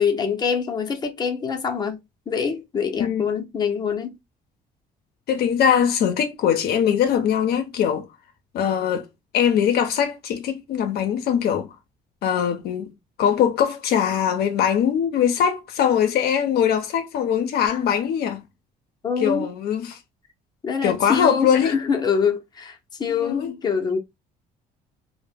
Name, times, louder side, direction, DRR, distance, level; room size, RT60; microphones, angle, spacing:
voice 1, 0.0-2.0 2.3-4.1 19.0-19.5 20.6-24.0, left 6 dB, 25° left, 0.6 m, -25 dB
voice 2, 5.3-8.1 8.5-9.1 9.3-11.8 12.2-12.9 13.2-18.4 19.2-20.0 20.8-21.7 23.1-23.5, left 8 dB, 70° left, 0.5 m, -21 dB
2.1 x 2.1 x 3.2 m
cardioid pair, 110°, 17 cm